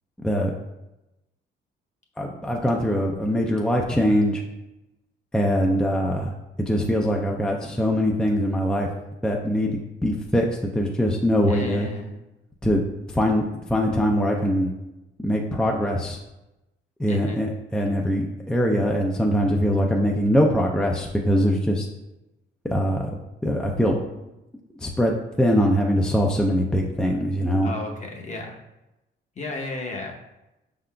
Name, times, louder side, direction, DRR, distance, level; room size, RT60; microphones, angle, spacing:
voice 1, 2.2-4.4 5.3-6.3 6.7-8.9 9.2-9.7 10.0-10.5 10.7-11.9 12.6-12.8 13.1-13.4 13.7-14.7 15.2-16.2 17.0-17.5 17.7-21.9 22.7-23.1 23.4-24.0 24.8-27.7, equal, 5° left, 0 dB, 0.4 m, -22 dB
voice 2, 11.4-12.2 17.1-17.4 27.6-28.6 29.4-30.1, left 2 dB, 35° left, 1 dB, 0.8 m, -34 dB
5.3 x 3.8 x 2.2 m, 0.96 s
cardioid pair, 90°, 20 cm